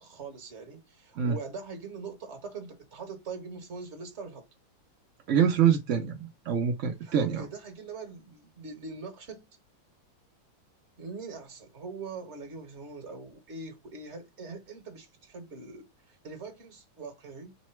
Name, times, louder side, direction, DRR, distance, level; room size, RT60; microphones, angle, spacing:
voice 1, 0.0-4.5 7.0-9.5 11.0-17.6, right 4 dB, 40° right, 1.3 m, -42 dB
voice 2, 5.3-7.4, right 8 dB, 75° right, 0.7 m, -25 dB
4.0 x 2.1 x 4.3 m
omnidirectional pair, 2.2 m